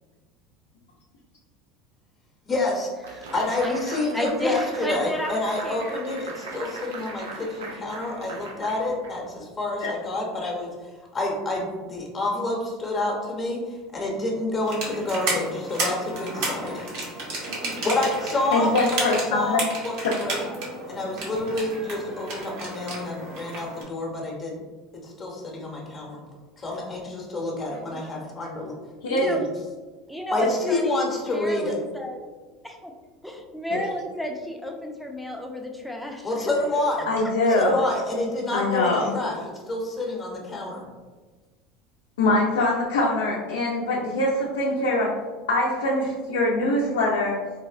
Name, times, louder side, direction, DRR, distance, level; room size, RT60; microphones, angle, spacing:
voice 1, 2.5-2.9 3.3-10.7 11.1-16.9 17.4-20.5 20.9-24.6 25.0-26.2 26.6-28.8 29.2-29.5 30.3-31.8 36.2-37.1 37.5-39.4 39.7-40.9, left 2 dB, 30° left, -2 dB, 0.8 m, -28 dB
sound 1, 3.0-9.5, right 3 dB, 85° right, 0.5 m, -39 dB
voice 2, 3.6-6.0 27.9-28.0 29.1-29.4 30.1-32.2 32.6-32.9 33.2-36.3, left 1 dB, ahead, 1 dB, 0.5 m, -32 dB
sound 2, 14.6-23.8, right 2 dB, 70° right, 1.0 m, -32 dB
voice 3, 18.5-19.6 20.0-20.1 29.0-29.3 30.4-30.5 33.7-33.8 37.1-37.8 38.5-39.1 42.2-45.1 45.5-47.4, left 2 dB, 85° left, -5 dB, 0.5 m, -23 dB
4.0 x 2.1 x 2.4 m, 1.3 s
hypercardioid pair, 90°, 0 cm